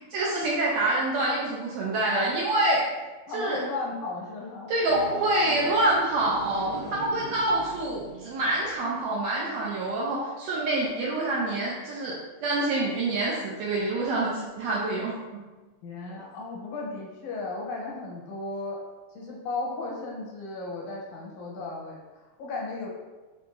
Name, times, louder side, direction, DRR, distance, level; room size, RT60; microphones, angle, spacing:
voice 1, 0.1-3.0 3.3-3.6 4.7-15.4 16.2-16.3, right 2 dB, 75° right, -4 dB, 1.7 m, -26 dB
voice 2, 3.3-4.8 15.8-18.8 19.1-22.9, left 3 dB, 90° left, -2 dB, 2.4 m, -35 dB
sound 1, 4.8-8.9, equal, 50° left, 0.5 m, -40 dB
4.5 x 4.3 x 2.6 m, 1.2 s
omnidirectional pair, 3.4 m